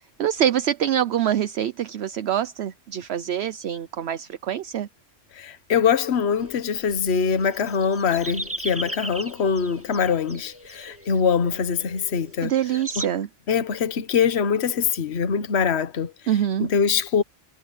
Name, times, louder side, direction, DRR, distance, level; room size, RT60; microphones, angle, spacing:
voice 1, 0.2-4.9 12.4-13.3 16.3-16.7, right 10 dB, 65° right, 0.9 m, -25 dB
voice 2, 5.3-12.5 13.0-13.1 13.5-16.1 16.6-17.2, left 6 dB, 60° left, 1.3 m, -23 dB
sound 1, 6.4-13.1, right 1 dB, 10° right, 1.6 m, -38 dB
omnidirectional pair, 1.3 m